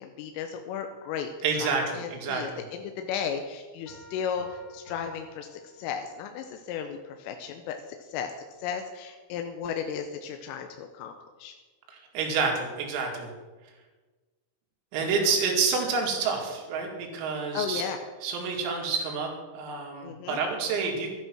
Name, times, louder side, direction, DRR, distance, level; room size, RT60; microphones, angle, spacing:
voice 1, 0.0-1.3 1.6-8.3 8.6-11.1 11.4-11.5 17.5-18.1 20.0-20.4 20.8-20.9, left 7 dB, 85° left, 5 dB, 3.3 m, -35 dB
voice 2, 1.4-2.6 11.9-13.3 14.9-17.8 18.2-21.1, right 5 dB, 85° right, 1 dB, 5.0 m, -28 dB
Piano, 3.9-6.4, left 1 dB, 50° left, 4.3 m, -51 dB
12.5 x 11.0 x 6.1 m, 1.3 s
omnidirectional pair, 6.0 m